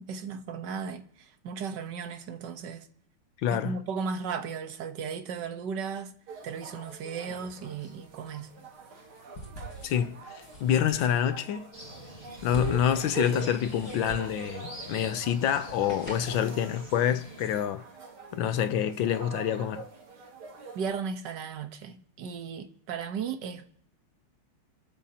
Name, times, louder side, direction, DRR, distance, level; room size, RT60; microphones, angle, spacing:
voice 1, 0.0-2.9 3.5-6.1 6.4-8.5 20.7-23.8, right 6 dB, 60° right, 1.6 m, -36 dB
voice 2, 3.4-3.8 9.8-11.7 12.4-17.8 18.3-19.8, left 9 dB, 70° left, 1.4 m, -27 dB
sound 1, 6.3-20.9, right 4 dB, 85° right, 2.9 m, -44 dB
sound 2, 7.0-16.5, right 2 dB, 45° left, 4.7 m, -46 dB
sound 3, 11.7-17.6, equal, 25° left, 7.8 m, -47 dB
27.5 x 14.0 x 2.9 m
omnidirectional pair, 2.3 m